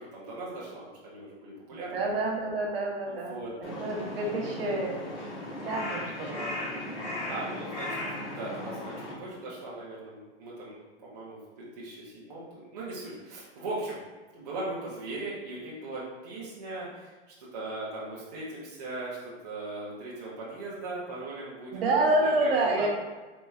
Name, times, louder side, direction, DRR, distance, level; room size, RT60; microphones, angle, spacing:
voice 1, 0.0-1.9 3.0-3.5 7.3-14.0 14.3-17.1 17.4-22.9, right 2 dB, 35° right, -7 dB, 0.7 m, -39 dB
voice 2, 1.9-4.9 5.7-6.5 21.7-22.9, right 2 dB, 60° right, -2 dB, 0.9 m, -28 dB
Crow, 3.6-9.1, left 1 dB, 80° left, 1.3 m, -36 dB
4.1 x 3.3 x 2.3 m, 1.3 s
hypercardioid pair, 180°, 34 cm